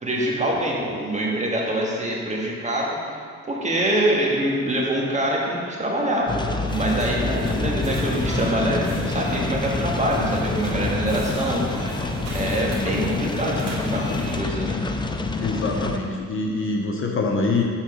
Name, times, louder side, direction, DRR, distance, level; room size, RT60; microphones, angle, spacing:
voice 1, 0.0-3.0 3.5-11.8 12.3-14.8, right 1 dB, 25° right, -3 dB, 1.6 m, -25 dB
sound 1, 6.3-16.0, left 3 dB, 15° left, 0.5 m, -27 dB
sound 2, 6.7-14.4, right 1 dB, 65° right, 1.9 m, -35 dB
voice 2, 15.3-17.6, left 3 dB, 45° left, 1 dB, 0.9 m, -24 dB
7.1 x 4.0 x 6.3 m, 2.2 s
cardioid pair, 90°, 30 cm